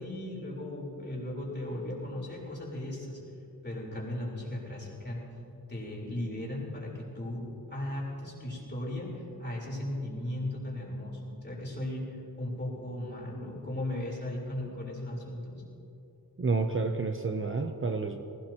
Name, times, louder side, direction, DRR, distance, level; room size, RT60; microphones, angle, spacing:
voice 1, 0.0-3.2 3.6-5.2 5.7-15.6, left 1 dB, 30° left, -4 dB, 3.9 m, -37 dB
voice 2, 16.4-18.2, right 4 dB, 35° right, 5 dB, 0.7 m, -30 dB
19.5 x 17.0 x 2.9 m, 2.8 s
wide cardioid pair, 95°, 38 cm